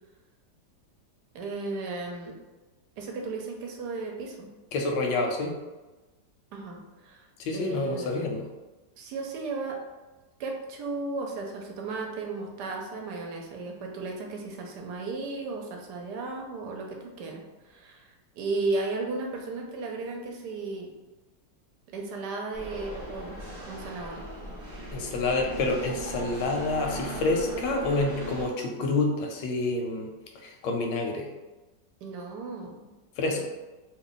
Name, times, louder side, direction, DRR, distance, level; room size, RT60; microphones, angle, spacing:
voice 1, 1.3-2.3 3.0-4.5 6.5-7.3 7.5-8.1 9.0-9.8 10.4-20.9 21.9-23.4 23.6-24.3 32.0-32.8 33.4-33.5, right 3 dB, 75° right, 1 dB, 1.2 m, -35 dB
voice 2, 4.7-5.5 7.4-8.4 24.9-31.3 33.2-33.5, left 3 dB, 80° left, 2 dB, 1.2 m, -28 dB
sound 1, 22.5-28.4, right 2 dB, 20° right, 0.6 m, -38 dB
3.0 x 2.2 x 3.8 m, 1.1 s
omnidirectional pair, 1.9 m